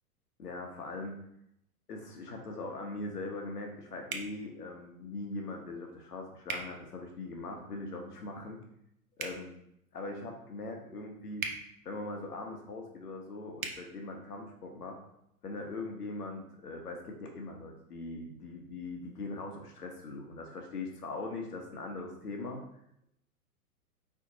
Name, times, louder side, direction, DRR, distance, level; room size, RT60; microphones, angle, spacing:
voice 1, 0.4-1.1 1.9-8.6 9.2-9.5 9.9-11.5 11.8-15.0 15.4-22.6, left 2 dB, 75° left, 2 dB, 1.2 m, -41 dB
sound 1, 4.1-4.3 6.4-6.6 9.1-9.4 11.4-11.6 13.6-13.8, right 5 dB, 60° right, 0.9 m, -36 dB
4.9 x 3.7 x 2.9 m, 0.75 s
figure-of-eight pair, 110°, 46 cm